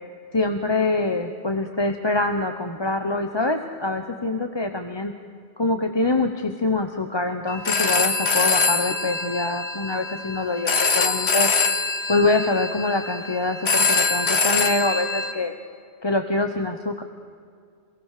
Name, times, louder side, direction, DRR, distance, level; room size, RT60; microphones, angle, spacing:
voice 1, 0.3-5.1 5.6-11.5 12.1-15.5 16.0-17.0, left 2 dB, 25° left, 6 dB, 1.0 m, -25 dB
Telephone, 7.5-15.3, left 4 dB, 65° left, 1.7 m, -24 dB
27.5 x 18.0 x 6.7 m, 2.3 s
omnidirectional pair, 1.2 m